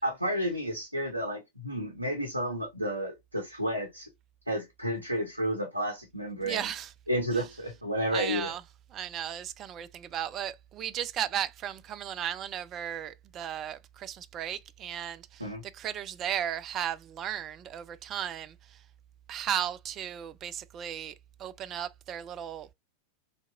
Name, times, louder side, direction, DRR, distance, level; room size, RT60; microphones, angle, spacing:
voice 1, 0.0-4.1 4.5-6.7 7.1-8.5 15.4-15.6, equal, 90° left, 0.6 m, -31 dB
voice 2, 6.4-6.9 7.3-7.5 8.1-8.6 8.9-18.8 19.3-22.7, right 10 dB, 30° right, 0.3 m, -35 dB
3.5 x 2.8 x 2.3 m
figure-of-eight pair, 90°, 0 cm